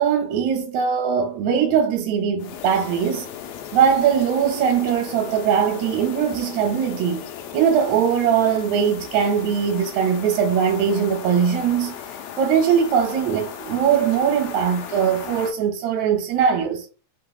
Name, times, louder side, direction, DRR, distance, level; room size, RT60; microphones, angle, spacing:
voice 1, 0.0-3.3 3.7-7.2 7.5-12.0 12.4-16.9, right 7 dB, 75° right, 1.8 m, -20 dB
sound 1, 2.4-15.5, left 8 dB, 75° left, 1.7 m, -37 dB
5.1 x 3.3 x 2.3 m
omnidirectional pair, 3.5 m